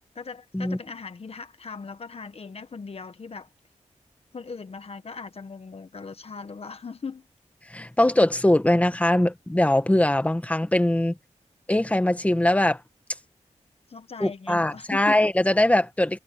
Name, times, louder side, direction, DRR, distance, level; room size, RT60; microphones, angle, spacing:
voice 1, 0.1-3.5 4.3-7.3 13.9-15.2, left 5 dB, 55° left, 1.3 m, -39 dB
voice 2, 7.7-11.1 11.7-12.8 14.2-16.2, left 1 dB, 10° left, 1.6 m, -21 dB
wide cardioid pair, 85°, 13 cm